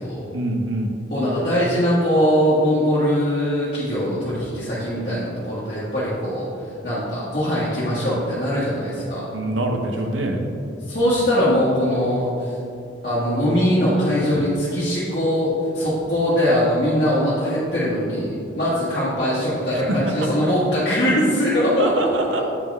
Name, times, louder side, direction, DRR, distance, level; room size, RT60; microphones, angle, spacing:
voice 1, 0.3-0.9 9.3-10.4 14.3-14.4 19.9-20.1 21.8-22.4, right 1 dB, 80° right, 3 dB, 0.7 m, -24 dB
voice 2, 1.1-9.3 10.8-12.6 13.0-22.4, equal, 50° left, -11 dB, 1.4 m, -21 dB
8.3 x 4.2 x 3.5 m, 2.6 s
head